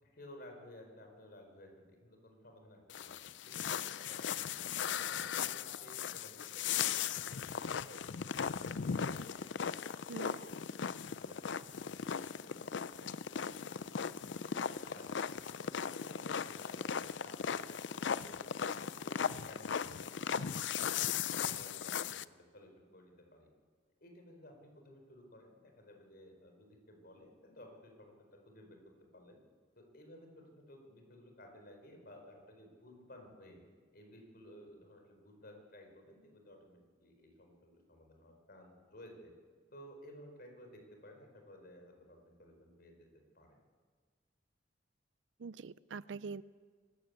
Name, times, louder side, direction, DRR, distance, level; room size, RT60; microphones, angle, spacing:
voice 1, 0.0-6.8 7.1-9.9 10.2-10.7 11.1-13.8 14.2-15.1 15.6-21.1 21.4-22.2 22.5-23.5 24.0-28.8 29.1-29.4 29.8-33.6 33.9-39.3 39.7-43.1 43.3-43.6, left 1 dB, 55° left, 3 dB, 4.6 m, -56 dB
sound 1, 2.9-22.2, left 7 dB, 70° left, 0.5 m, -38 dB
voice 2, 45.4-46.4, right 5 dB, 75° right, 18 dB, 0.5 m, -44 dB
24.5 x 13.0 x 8.2 m, 1.5 s
head